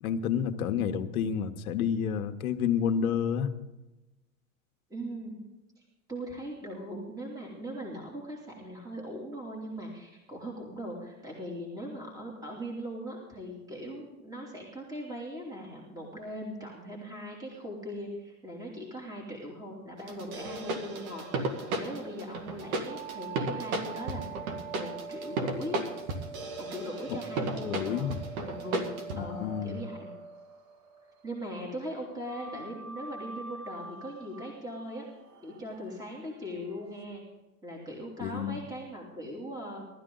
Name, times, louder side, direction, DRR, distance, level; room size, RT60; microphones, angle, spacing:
voice 1, 0.0-3.5 27.1-27.2 27.6-28.2 29.1-29.8 38.2-38.6, left 8 dB, 90° left, 6 dB, 1.3 m, -30 dB
voice 2, 4.9-5.4 5.8-5.9 6.1-24.3 24.7-25.8 26.6-28.2 28.4-28.9 29.1-30.1 31.2-35.0 35.4-37.2 37.6-39.8, equal, 10° right, -2 dB, 2.9 m, -40 dB
sound 1, 20.1-29.2, right 2 dB, 85° right, 2.3 m, -35 dB
sound 2, 22.6-31.4 32.2-37.0, right 4 dB, 45° right, 1.6 m, -44 dB
18.5 x 13.0 x 3.9 m, 1.0 s
supercardioid pair, 125°, 42 cm